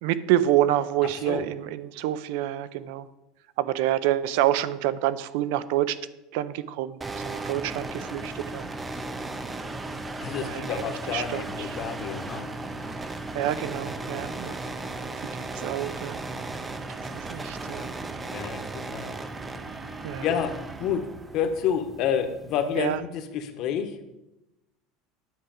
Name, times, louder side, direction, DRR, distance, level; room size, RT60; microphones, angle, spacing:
voice 1, 0.0-3.1 3.6-6.0 6.3-8.7 10.4-11.7 13.3-14.5 15.3-16.2 17.0-17.9 20.0-20.3 22.8-23.0, right 13 dB, 65° right, 15 dB, 0.5 m, -27 dB
sound 1, 7.0-23.0, right 2 dB, 10° right, 0.5 m, -36 dB
voice 2, 10.2-12.8 15.1-15.2 18.3-19.1 20.2-24.1, left 8 dB, 40° left, 7 dB, 1.0 m, -29 dB
9.3 x 4.8 x 7.7 m, 0.94 s
cardioid pair, 175°, 0 cm